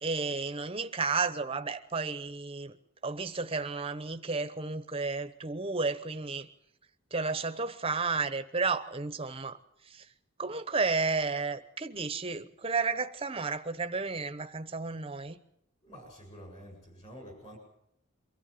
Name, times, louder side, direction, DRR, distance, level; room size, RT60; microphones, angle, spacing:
voice 1, 0.0-2.8 3.0-6.5 7.1-9.6 10.4-15.4, right 4 dB, 25° right, 11 dB, 1.0 m, -32 dB
voice 2, 15.8-17.6, equal, 30° left, 3 dB, 7.9 m, -48 dB
23.5 x 14.5 x 8.8 m, 0.78 s
head